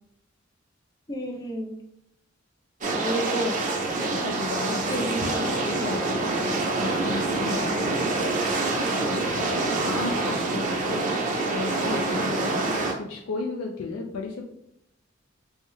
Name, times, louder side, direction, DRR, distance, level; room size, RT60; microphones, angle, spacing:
voice 1, 1.1-1.8 3.0-3.6 4.7-5.5 7.6-7.8 12.3-12.5, equal, 20° left, 2 dB, 0.3 m, -32 dB
sound 1, 2.8-12.9, right 2 dB, 40° right, 0.6 m, -26 dB
voice 2, 4.1-4.9 5.2-7.8 8.9-14.4, left 3 dB, 85° left, 0 dB, 0.4 m, -34 dB
3.4 x 2.1 x 3.0 m, 0.81 s
head